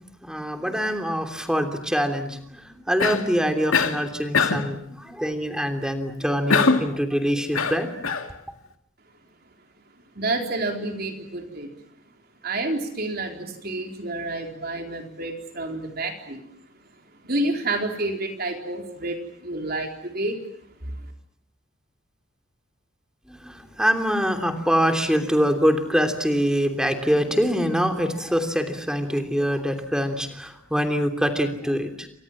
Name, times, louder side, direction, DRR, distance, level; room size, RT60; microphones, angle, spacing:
voice 1, 0.2-7.9 23.3-32.1, equal, 5° right, 5 dB, 3.1 m, -24 dB
Cough, 3.0-3.3 3.7-4.0 4.3-4.7 6.5-6.9 7.5-8.3, left 5 dB, 85° left, 2.3 m, -22 dB
voice 2, 10.1-11.7 12.4-16.4 17.2-20.4 20.8-21.0, right 2 dB, 50° right, 3 dB, 4.1 m, -29 dB
29.5 x 25.0 x 7.5 m, 0.73 s
head